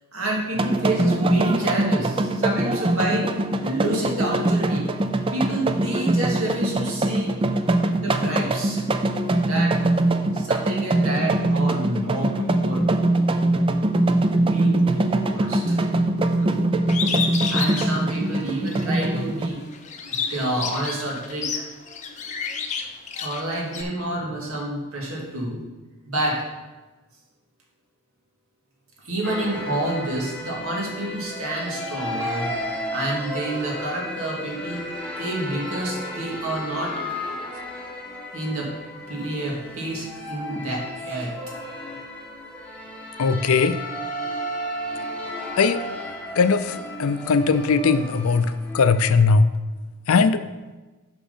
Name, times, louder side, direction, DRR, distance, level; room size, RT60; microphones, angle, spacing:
voice 1, 0.1-3.3 3.6-4.9 5.3-7.3 8.0-8.8 9.5-9.8 10.3-12.9 14.3-15.9 16.4-16.5 17.5-19.6 20.3-21.6 23.2-25.6 26.1-26.4 29.0-32.5 32.9-34.9 35.2-37.0 38.3-38.7 39.1-41.4, right 1 dB, 70° right, -2 dB, 2.1 m, -28 dB
sound 1, 0.6-19.5, right 2 dB, 25° right, 0.4 m, -22 dB
Bird, 16.9-18.9 19.3-23.8, left 6 dB, 30° left, 0.7 m, -30 dB
sound 2, 29.2-49.1, equal, 5° left, 1.2 m, -34 dB
voice 2, 43.2-43.8 45.6-45.8 46.4-49.5 50.1-50.4, left 4 dB, 75° left, 12 dB, 0.5 m, -19 dB
7.1 x 6.2 x 5.6 m, 1.2 s
head